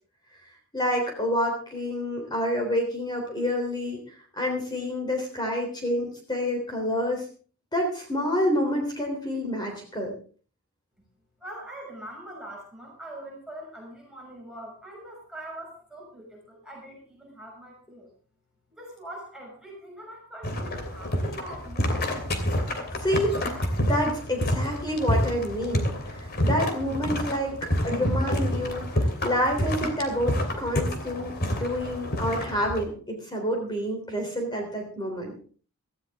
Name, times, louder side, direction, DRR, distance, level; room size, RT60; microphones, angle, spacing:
voice 1, 0.7-4.0 4.4-7.2 7.7-10.1 23.0-23.4 23.8-35.3, equal, 20° left, 2 dB, 3.4 m, -28 dB
voice 2, 11.4-18.1 18.8-22.1, right 1 dB, 5° right, -3 dB, 6.4 m, -42 dB
sound 1, 20.4-32.9, equal, 45° left, 2.8 m, -28 dB
17.0 x 14.5 x 3.6 m, 0.40 s
head